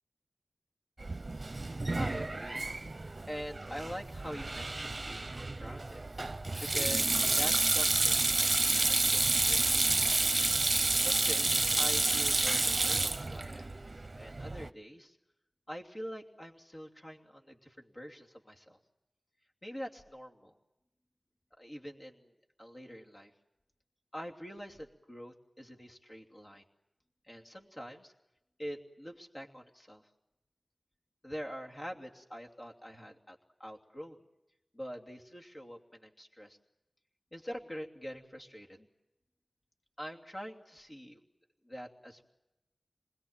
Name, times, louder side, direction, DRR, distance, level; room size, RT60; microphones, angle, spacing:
Sink (filling or washing), 1.0-14.7, right 2 dB, 50° right, 0.9 m, -30 dB
voice 1, 2.0-2.7 3.3-6.0 6.6-10.2 11.0-13.7 14.1-15.2 15.7-18.8 19.6-20.5 21.6-22.3 22.6-23.3 24.1-26.6 27.2-28.1 28.6-30.1 31.2-34.2 34.7-36.6 37.3-38.9 40.0-41.2 41.6-42.2, equal, 35° left, 1 dB, 2.9 m, -45 dB
26.5 x 21.5 x 9.0 m, 0.94 s
wide cardioid pair, 70°, 0 cm